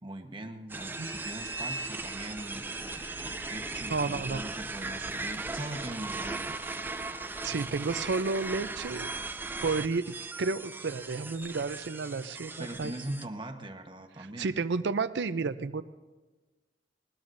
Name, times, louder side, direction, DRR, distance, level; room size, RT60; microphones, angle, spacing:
voice 1, 0.0-6.9 12.6-14.6, right 1 dB, 25° right, 4 dB, 1.1 m, -41 dB
sound 1, 0.7-13.3, right 3 dB, 10° right, 0.3 m, -38 dB
voice 2, 3.9-4.4 7.4-9.1 9.6-12.9 14.4-15.8, right 4 dB, 75° right, 12 dB, 0.5 m, -31 dB
21.0 x 20.0 x 2.6 m, 1.2 s
head